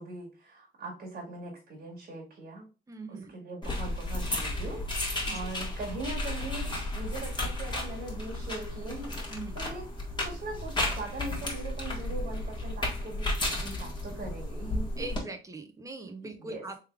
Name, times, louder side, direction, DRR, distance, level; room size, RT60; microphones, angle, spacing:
voice 1, 0.0-2.7 3.1-9.8 10.2-15.1 16.2-16.6, right 2 dB, 50° right, -2 dB, 1.7 m, -41 dB
voice 2, 2.9-3.3 5.2-5.5 9.3-9.6 15.0-16.8, right 3 dB, 15° right, 5 dB, 0.8 m, -41 dB
sound 1, 3.6-15.2, left 1 dB, 20° left, 1.7 m, -33 dB
3.5 x 3.2 x 3.3 m, 0.33 s
cardioid pair, 90°, 20 cm